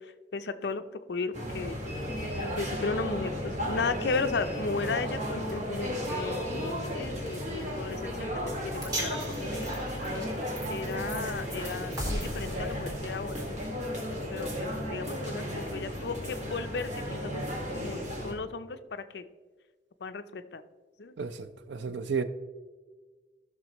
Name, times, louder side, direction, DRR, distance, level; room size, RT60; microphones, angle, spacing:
voice 1, 0.0-1.8 2.4-9.2 9.5-9.9 10.7-13.6 14.3-17.5 17.7-19.3 20.0-20.6 21.0-21.1, left 4 dB, 65° left, 0.5 m, -35 dB
sound 1, 1.3-18.3, equal, 40° right, 1.7 m, -34 dB
sound 2, 8.8-15.2, equal, 20° right, 1.8 m, -39 dB
voice 2, 21.2-22.2, right 5 dB, 80° right, 0.6 m, -33 dB
14.5 x 6.2 x 3.0 m
head